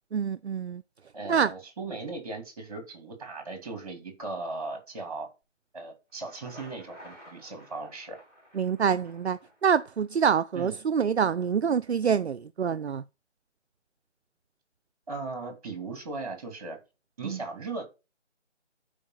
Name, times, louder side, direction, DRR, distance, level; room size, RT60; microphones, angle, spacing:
voice 1, 0.1-0.8 1.3-1.5 8.5-13.0 17.2-17.4, right 7 dB, 60° right, 0.5 m, -26 dB
voice 2, 1.1-5.3 5.7-8.2 10.5-10.8 15.1-16.8 17.2-17.8, right 3 dB, 30° right, 2.5 m, -38 dB
Thunder, 6.1-10.1, equal, 5° left, 3.8 m, -52 dB
11.5 x 4.8 x 4.3 m
figure-of-eight pair, 160°, 37 cm